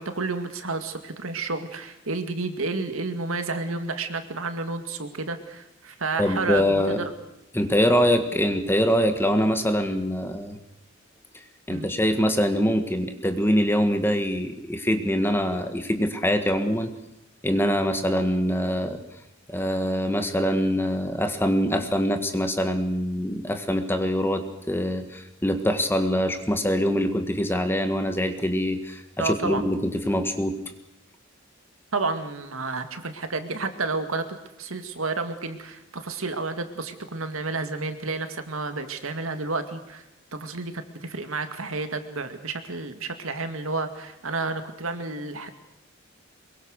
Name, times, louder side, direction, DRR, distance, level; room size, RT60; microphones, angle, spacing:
voice 1, 0.0-7.1 11.7-11.9 29.2-29.6 31.9-34.3 34.6-40.0 40.3-45.5, right 3 dB, 75° right, 8 dB, 2.1 m, -30 dB
voice 2, 6.2-7.0 7.5-10.6 11.7-16.9 17.4-19.0 19.5-30.6, equal, 10° left, 7 dB, 1.7 m, -24 dB
23.5 x 22.5 x 6.6 m, 0.84 s
head